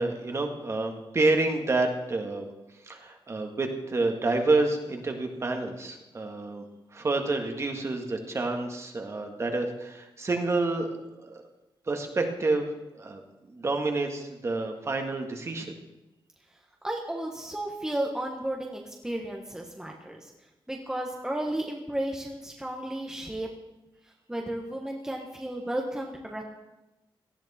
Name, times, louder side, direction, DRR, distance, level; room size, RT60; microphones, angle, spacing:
voice 1, 0.0-2.5 2.8-6.6 6.9-11.4 11.9-12.7 12.9-13.2 13.5-15.7, right 3 dB, 30° right, 4 dB, 1.8 m, -28 dB
voice 2, 16.8-20.3 20.7-23.5 24.3-26.4, right 1 dB, 5° right, 0 dB, 1.4 m, -33 dB
18.0 x 13.5 x 4.3 m, 0.98 s
wide cardioid pair, 170°, 9 cm